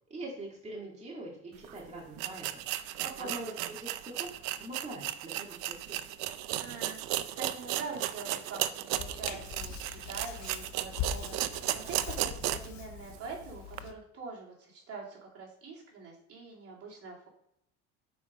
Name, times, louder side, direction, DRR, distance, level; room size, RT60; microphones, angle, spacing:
voice 1, 0.1-2.5 3.2-6.0, right 1 dB, 20° right, -2 dB, 2.2 m, -43 dB
sound 1, 1.6-1.7 2.2-12.8 13.1-13.2 13.7-13.8, right 14 dB, 85° right, 0.6 m, -35 dB
voice 2, 3.0-3.5 6.6-7.0 7.4-11.5 11.7-17.3, right 4 dB, 50° right, -3 dB, 2.7 m, -44 dB
Hands, 8.9-13.9, left 8 dB, 65° left, 1.0 m, -42 dB
7.0 x 4.9 x 5.1 m, 0.77 s
cardioid pair, 105°, 30 cm